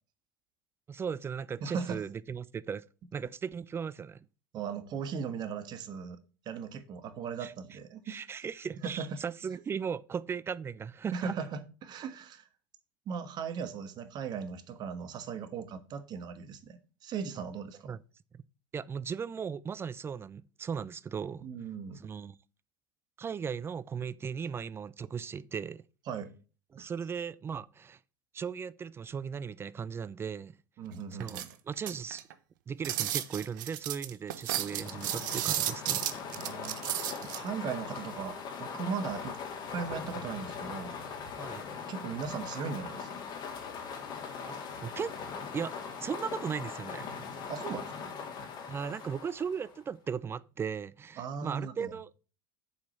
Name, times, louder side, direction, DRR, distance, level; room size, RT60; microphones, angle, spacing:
voice 1, 0.9-2.8 3.1-4.3 7.4-7.5 8.1-11.3 17.9-18.0 18.3-18.4 18.7-21.5 22.0-22.4 23.2-25.8 26.7-28.0 28.3-30.6 31.2-32.2 32.7-36.0 41.4-41.7 44.5-45.1 45.5-47.1 48.7-52.1, right 6 dB, 25° right, 0.4 m, -37 dB
voice 2, 1.6-2.0 4.5-8.2 8.8-9.2 11.1-12.5 13.1-18.0 21.4-22.0 26.1-26.3 26.8-26.9 30.8-31.5 36.4-39.4 39.7-41.0 41.9-43.2 47.5-48.1 51.2-51.9, right 6 dB, 40° right, 1.3 m, -38 dB
sound 1, 31.2-32.3 32.8-37.4, right 13 dB, 70° right, 0.8 m, -33 dB
sound 2, 34.4-49.9, left 6 dB, 45° left, 2.6 m, -41 dB
7.2 x 4.9 x 5.7 m
hypercardioid pair, 90°, 11 cm